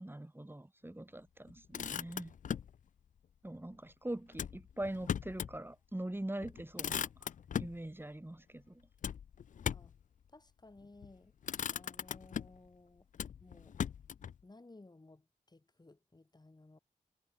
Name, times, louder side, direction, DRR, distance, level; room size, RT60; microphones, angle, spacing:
voice 1, 0.0-2.3 3.4-7.1 7.6-8.8, right 1 dB, 15° right, 3.7 m, -43 dB
Motor vehicle (road), 1.5-2.8 4.3-5.6 6.0-6.1 6.4-7.8 9.0-10.0 10.8-11.1 11.4-12.7 13.1-14.4, left 8 dB, 75° left, 0.4 m, -39 dB
voice 2, 10.3-11.3 11.7-13.1 13.4-13.8 14.4-16.8, left 2 dB, 30° left, 3.5 m, -58 dB
cardioid pair, 65°, 13 cm